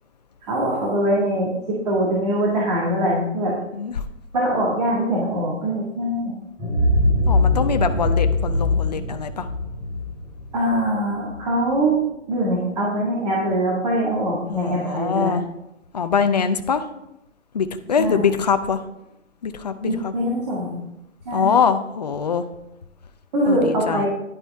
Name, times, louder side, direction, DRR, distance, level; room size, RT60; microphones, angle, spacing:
voice 1, 0.4-3.5 4.3-6.4 10.5-12.0 12.3-15.4 18.0-18.3 19.8-20.8 21.3-21.5 23.3-24.1, right 1 dB, 35° right, -4 dB, 1.9 m, -23 dB
voice 2, 3.7-4.0 7.3-9.5 14.5-15.4 15.9-16.9 17.5-18.8 19.4-20.1 21.3-22.4 23.4-24.1, left 6 dB, 35° left, 9 dB, 0.6 m, -23 dB
sound 1, 6.6-11.3, left 2 dB, 15° right, 2.5 m, -21 dB
10.0 x 9.8 x 3.5 m, 0.87 s
hypercardioid pair, 165°, 37 cm